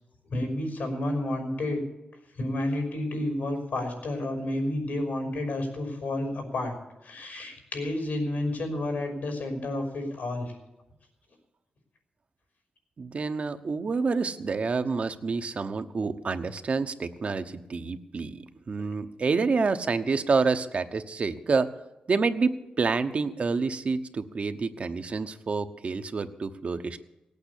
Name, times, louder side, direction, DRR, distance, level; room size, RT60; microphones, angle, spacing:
voice 1, 0.3-1.8 2.4-6.8 7.0-10.5, left 1 dB, 85° left, 4 dB, 5.5 m, -30 dB
voice 2, 13.0-18.4 18.7-21.7 22.1-22.5 22.8-27.0, right 4 dB, 50° right, 8 dB, 1.0 m, -28 dB
18.0 x 8.7 x 8.4 m, 0.98 s
wide cardioid pair, 110°, 3 cm